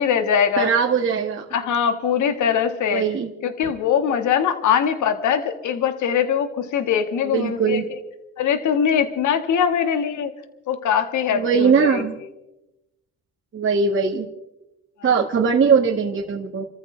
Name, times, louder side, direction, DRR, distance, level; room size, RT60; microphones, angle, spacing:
voice 1, 0.0-0.7 1.5-3.0 3.4-8.0 8.4-10.3 10.7-12.1 15.0-15.1, left 8 dB, 75° left, 8 dB, 1.8 m, -22 dB
voice 2, 0.6-1.4 2.9-3.3 7.3-7.8 11.3-12.1 13.5-14.2 15.0-16.6, right 6 dB, 40° right, 0 dB, 1.7 m, -20 dB
29.5 x 14.5 x 3.4 m, 0.94 s
cardioid pair, 90°, 30 cm